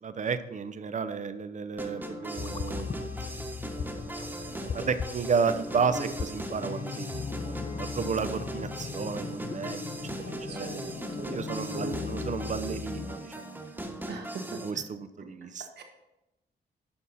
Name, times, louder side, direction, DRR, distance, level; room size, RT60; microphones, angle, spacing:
voice 1, 0.0-3.1 3.8-9.8 10.1-13.7 14.6-15.6, right 5 dB, 45° right, 11 dB, 0.7 m, -33 dB
sound 1, 1.8-14.7, right 1 dB, 10° right, 1.3 m, -39 dB
sound 2, 2.4-13.2, left 6 dB, 30° left, 0.4 m, -38 dB
voice 2, 10.2-11.4 11.7-11.9 14.1-14.8 15.8-15.9, right 2 dB, 75° right, 4 dB, 1.4 m, -39 dB
11.0 x 5.4 x 4.2 m, 0.94 s
cardioid pair, 80°, 18 cm